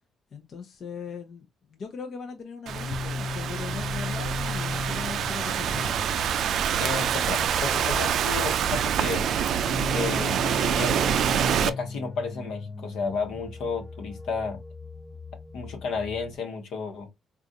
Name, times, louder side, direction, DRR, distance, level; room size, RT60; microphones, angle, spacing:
voice 1, 0.3-6.0, left 5 dB, 55° left, 0.6 m, -39 dB
sound 1, 2.7-16.3, left 4 dB, 15° left, 0.5 m, -37 dB
Thunderstorm / Rain, 2.7-11.7, right 8 dB, 70° right, 0.3 m, -26 dB
voice 2, 6.8-9.3 9.9-11.1 11.6-14.6 15.5-17.1, left 5 dB, 80° left, 1.0 m, -32 dB
3.7 x 2.4 x 2.6 m
cardioid pair, 90°, 0 cm